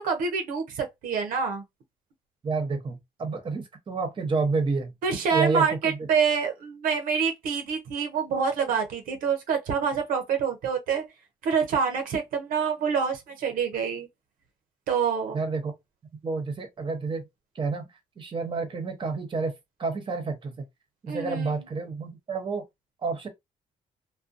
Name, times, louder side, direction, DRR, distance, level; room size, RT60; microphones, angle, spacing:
voice 1, 0.0-1.6 5.0-11.0 11.4-14.1 14.9-15.4 21.1-21.6, right 6 dB, 80° right, 0.6 m, -26 dB
voice 2, 2.4-4.9 5.3-6.0 15.3-15.7 16.2-17.3 17.5-17.9 18.2-19.5 19.8-20.7 21.0-22.6 23.0-23.3, right 4 dB, 35° right, 0.9 m, -29 dB
2.4 x 2.2 x 2.5 m
cardioid pair, 85°, 14 cm